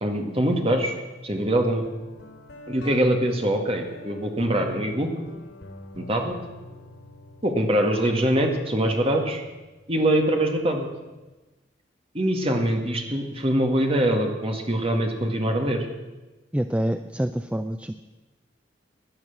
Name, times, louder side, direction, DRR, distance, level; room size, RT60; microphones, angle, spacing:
voice 1, 0.0-0.9 1.2-1.8 2.7-5.1 5.9-6.3 7.4-9.4 9.9-10.9 12.1-15.9, right 1 dB, 30° right, 3 dB, 2.0 m, -23 dB
Guitar, 1.8-11.3, equal, 85° left, 3.6 m, -45 dB
voice 2, 16.5-17.9, equal, 5° right, 9 dB, 0.4 m, -26 dB
17.0 x 10.5 x 7.2 m, 1.2 s
head